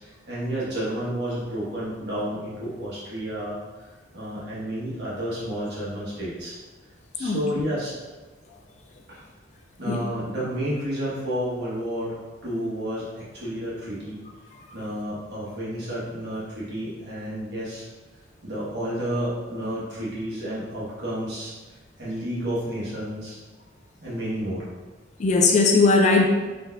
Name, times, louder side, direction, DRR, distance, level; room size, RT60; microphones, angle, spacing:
voice 1, 0.2-3.6 4.1-6.5 7.2-7.9 9.1-9.2 9.8-12.1 12.4-14.2 14.7-17.8 18.4-21.5 22.0-23.4 24.0-24.6, equal, 55° right, -8 dB, 1.5 m, -30 dB
voice 2, 25.2-26.3, left 3 dB, 35° left, 1 dB, 0.3 m, -18 dB
4.2 x 3.4 x 2.6 m, 1.3 s
head